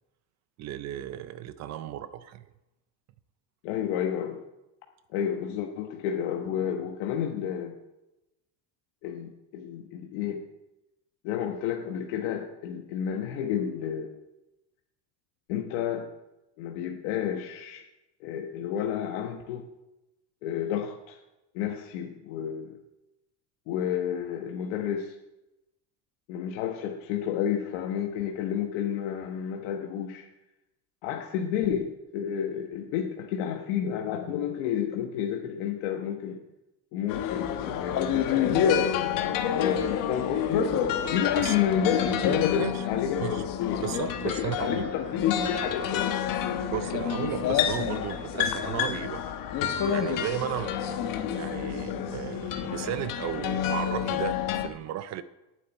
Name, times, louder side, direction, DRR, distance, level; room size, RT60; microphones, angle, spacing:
voice 1, 0.6-2.4 41.4-41.6 42.6-42.9 43.2-43.5 43.8-44.8 46.7-51.0 51.3-55.2, right 11 dB, 40° right, 13 dB, 0.5 m, -35 dB
voice 2, 3.6-4.4 5.1-7.7 9.0-10.4 11.2-14.1 15.5-16.1 16.6-17.8 18.2-19.6 20.4-21.2 21.5-22.8 23.7-25.1 26.3-30.3 31.0-36.4 36.9-38.8 39.6-40.7 41.1-43.9 44.2-46.4, left 9 dB, 80° left, 2 dB, 1.3 m, -30 dB
sound 1, 37.1-54.7, left 8 dB, 50° left, 1.2 m, -28 dB
8.9 x 8.0 x 9.2 m, 0.98 s
cardioid pair, 170°, 43 cm